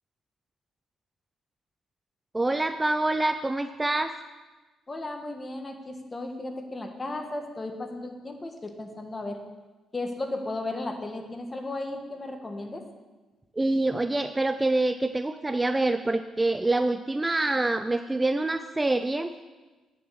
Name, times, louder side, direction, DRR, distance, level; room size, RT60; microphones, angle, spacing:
voice 1, 2.3-4.1 13.6-19.3, right 2 dB, 15° right, 9 dB, 0.4 m, -26 dB
voice 2, 4.9-9.4 9.9-12.8, left 2 dB, 25° left, 5 dB, 1.4 m, -35 dB
9.0 x 7.4 x 6.4 m, 1.2 s
cardioid pair, 90°, 0 cm